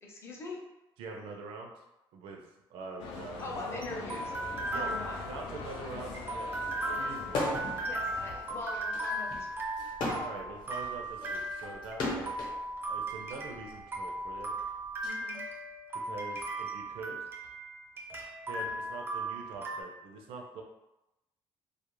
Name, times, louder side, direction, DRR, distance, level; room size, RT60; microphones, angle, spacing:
voice 1, 0.0-0.6 3.4-5.2 7.8-9.6 15.0-15.4, left 2 dB, 30° left, -2 dB, 0.5 m, -42 dB
voice 2, 1.0-1.7 2.1-2.4 2.7-3.7 4.7-4.9 5.3-6.5 6.8-7.5 10.2-12.4 12.9-14.5 16.0-17.2 18.5-20.6, right 3 dB, 80° right, 1 dB, 0.5 m, -44 dB
sound 1, 3.0-8.4, left 4 dB, 80° left, 0.4 m, -43 dB
sound 2, 3.1-19.8, right 1 dB, 25° right, 0.3 m, -37 dB
sound 3, 7.3-7.8 8.2-12.6 13.4-15.1, left 2 dB, 60° left, 0.8 m, -36 dB
2.3 x 2.1 x 3.0 m, 0.92 s
cardioid pair, 160°, 9 cm